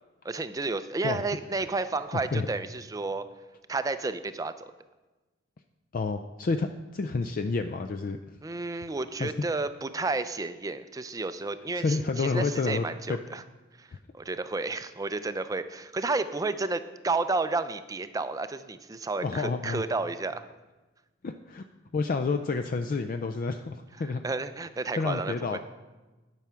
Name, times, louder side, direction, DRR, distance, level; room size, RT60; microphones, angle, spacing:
voice 1, 0.2-3.2 3.7-4.7 8.4-13.4 13.8-20.5 24.2-25.6, right 3 dB, 20° right, 12 dB, 0.4 m, -31 dB
voice 2, 2.1-2.5 5.9-8.2 9.2-9.3 11.8-13.2 13.9-14.0 19.2-19.8 21.2-21.6 21.9-24.2 25.0-25.6, left 4 dB, 45° left, 7 dB, 0.4 m, -29 dB
10.5 x 6.1 x 5.7 m, 1.2 s
head